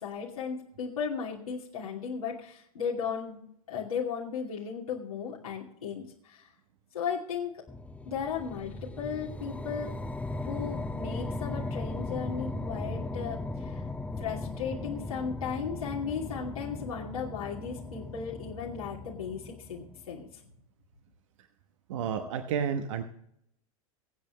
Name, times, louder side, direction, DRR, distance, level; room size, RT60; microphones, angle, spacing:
voice 1, 0.0-3.4 3.7-6.5 6.9-7.6 8.0-9.9 10.4-13.8 14.2-20.4 22.2-22.3, left 6 dB, 75° left, -4 dB, 2.6 m, -36 dB
sound 1, 7.7-20.2, left 2 dB, 5° left, 1.1 m, -38 dB
voice 2, 21.9-23.0, right 7 dB, 60° right, 7 dB, 1.1 m, -31 dB
24.0 x 8.6 x 3.1 m, 0.72 s
figure-of-eight pair, 85°, 18 cm